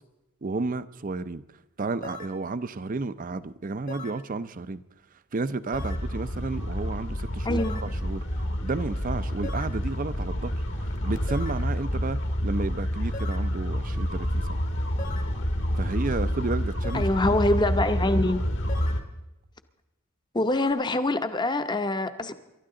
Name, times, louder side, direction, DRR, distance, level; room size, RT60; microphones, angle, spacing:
voice 1, 0.4-1.4 1.8-4.8 5.3-8.2 8.6-14.6 15.8-17.2, right 3 dB, 40° right, 14 dB, 0.5 m, -32 dB
sound 1, 2.0-2.4 3.9-4.3 5.7-6.1 7.6-8.0 9.4-9.8 11.3-11.7 13.1-13.5 15.0-15.4 16.8-17.2 18.7-19.1 20.5-20.7, left 2 dB, 40° left, 1.1 m, -40 dB
sound 2, 5.7-19.0, equal, 55° left, 1.6 m, -28 dB
voice 2, 7.4-7.9 16.9-18.4 20.3-22.3, left 2 dB, 20° left, 10 dB, 0.8 m, -25 dB
28.5 x 12.5 x 3.8 m, 0.99 s
head